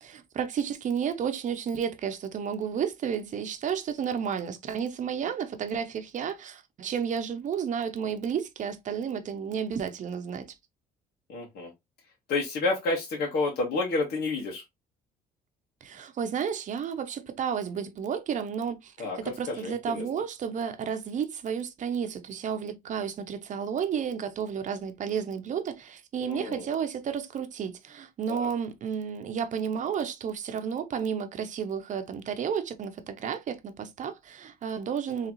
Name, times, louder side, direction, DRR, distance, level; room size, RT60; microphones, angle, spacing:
voice 1, 0.0-10.5 15.8-35.3, right 7 dB, 45° right, 0.8 m, -32 dB
voice 2, 11.3-11.7 12.3-14.6 19.0-19.2 19.5-20.0 26.2-26.7 28.3-28.5, left 3 dB, 70° left, 1.6 m, -29 dB
3.8 x 3.2 x 3.0 m
cardioid pair, 110°, 17 cm